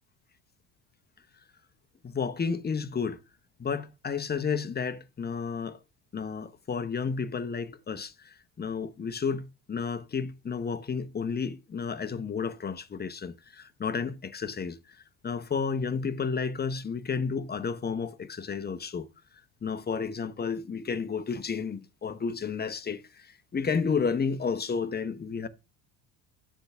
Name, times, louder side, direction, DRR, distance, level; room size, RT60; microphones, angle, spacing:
voice 1, 2.0-3.2 3.6-5.8 6.1-14.8 15.2-19.1 19.6-25.5, left 5 dB, 20° left, 0.8 m, -32 dB
7.7 x 3.6 x 5.8 m
supercardioid pair, 80°, 46 cm